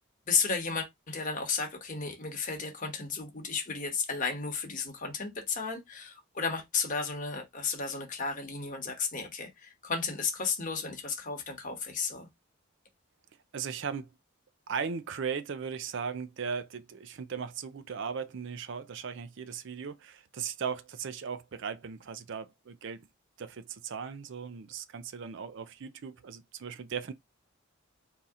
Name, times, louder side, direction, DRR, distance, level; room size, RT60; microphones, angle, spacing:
voice 1, 0.3-12.3, left 5 dB, 40° left, 1.1 m, -33 dB
voice 2, 13.5-14.1 14.7-23.1 23.4-27.1, right 6 dB, 55° right, 0.4 m, -37 dB
4.1 x 2.8 x 3.5 m
head